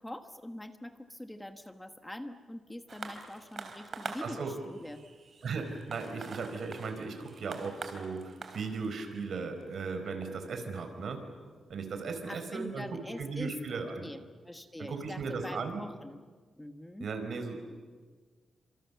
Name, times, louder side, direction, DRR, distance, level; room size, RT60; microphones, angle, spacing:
voice 1, 0.0-5.0 12.3-16.2 16.6-17.1, left 1 dB, 10° left, 8 dB, 1.3 m, -44 dB
sound 1, 2.9-11.7 12.5-12.6, right 4 dB, 50° right, 3.5 m, -46 dB
voice 2, 4.2-4.5 5.4-11.2 11.7-14.0 14.8-15.8 17.0-17.6, right 4 dB, 65° right, 6 dB, 4.7 m, -37 dB
29.5 x 26.5 x 7.1 m, 1.5 s
cardioid pair, 115°, 0 cm